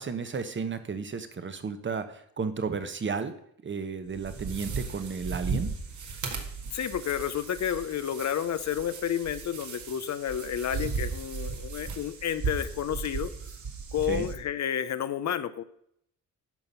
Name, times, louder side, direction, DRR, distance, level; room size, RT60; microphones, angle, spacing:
voice 1, 0.0-3.3 3.6-5.7 14.1-14.3, right 5 dB, 35° right, 10 dB, 1.1 m, -33 dB
sound 1, 4.1-14.3, right 5 dB, 60° right, 1.8 m, -36 dB
voice 2, 6.7-13.3 13.9-15.6, left 9 dB, 55° left, 13 dB, 0.7 m, -31 dB
10.5 x 5.8 x 5.6 m, 0.71 s
cardioid pair, 100°, 34 cm